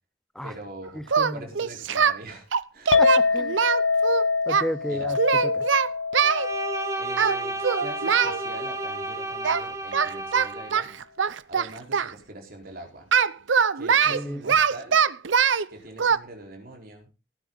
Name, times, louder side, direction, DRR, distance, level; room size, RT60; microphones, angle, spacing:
voice 1, 0.4-1.0 1.3-3.0 4.9-5.1 6.9-10.9 11.5-13.1 13.7-15.0 15.7-17.1, right 1 dB, 50° right, 2 dB, 4.5 m, -43 dB
voice 2, 0.9-1.5 3.0-3.6 4.5-5.6 14.1-14.5, equal, ahead, 14 dB, 0.7 m, -33 dB
Singing, 1.1-2.2 2.5-4.7 5.2-6.5 7.2-7.4 7.6-8.4 9.4-9.6 9.9-12.1 13.1-15.7 16.0-16.2, right 7 dB, 90° right, 0.7 m, -22 dB
Chink clink, 2.9-9.2, left 4 dB, 85° left, 0.9 m, -26 dB
Bowed string instrument, 6.2-10.9, right 2 dB, 15° right, 1.4 m, -32 dB
18.0 x 9.7 x 4.0 m, 0.29 s
head